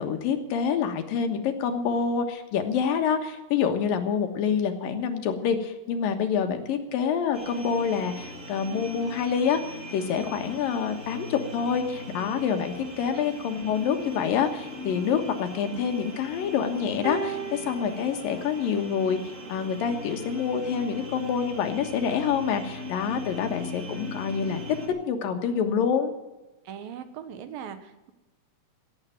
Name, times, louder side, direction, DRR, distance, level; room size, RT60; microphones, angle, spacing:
voice 1, 0.0-19.2 19.5-24.6 25.1-26.1, left 7 dB, 85° left, 6 dB, 3.1 m, -27 dB
sound 1, 7.3-24.9, left 1 dB, 25° right, 2.5 m, -40 dB
sound 2, 17.0-19.5 20.5-20.7, right 2 dB, 45° right, 3.3 m, -37 dB
voice 2, 26.6-28.1, right 8 dB, 90° right, 10 dB, 3.0 m, -40 dB
16.5 x 8.1 x 9.0 m, 1.0 s
omnidirectional pair, 3.9 m